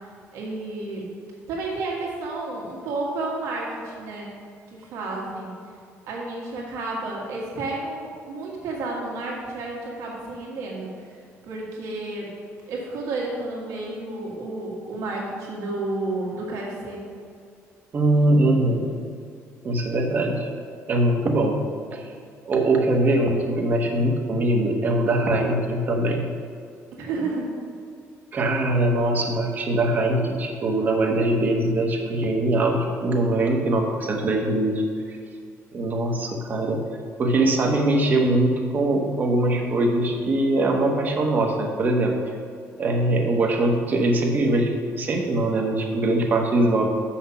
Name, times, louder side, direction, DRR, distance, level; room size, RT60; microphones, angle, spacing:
voice 1, 0.3-1.1 1.5-4.4 4.7-5.6 6.0-12.4 12.7-17.1 27.0-27.5, right 2 dB, 85° right, -3 dB, 1.8 m, -31 dB
voice 2, 17.9-18.9 19.6-20.5 20.9-21.6 21.9-22.1 22.4-26.3 28.3-34.8 35.7-36.8 37.2-42.1 42.8-46.9, right 1 dB, 35° right, 2 dB, 1.0 m, -22 dB
7.0 x 5.8 x 5.7 m, 2.2 s
cardioid pair, 160°, 5 cm